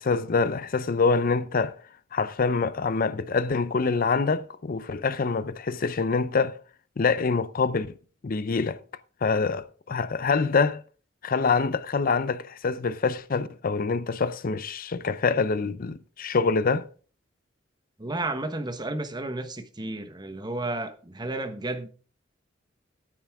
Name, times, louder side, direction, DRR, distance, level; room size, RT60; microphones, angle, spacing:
voice 1, 0.0-1.8 2.1-6.6 7.0-7.9 8.2-8.8 9.2-10.8 11.2-16.9, left 4 dB, 45° left, 0.6 m, -25 dB
voice 2, 18.0-21.9, right 2 dB, 20° right, 1.1 m, -32 dB
12.5 x 9.4 x 3.5 m
head